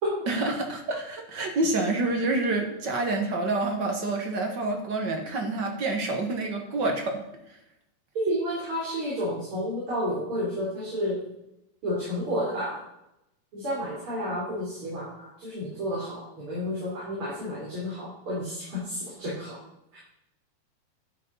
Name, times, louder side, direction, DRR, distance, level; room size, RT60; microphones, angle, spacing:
voice 1, 0.3-7.2, right 2 dB, 55° right, 2 dB, 1.3 m, -27 dB
voice 2, 8.2-11.2 11.8-12.8 13.5-19.6 19.9-20.0, equal, 35° right, -8 dB, 4.8 m, -31 dB
11.0 x 8.5 x 5.6 m, 0.84 s
omnidirectional pair, 4.0 m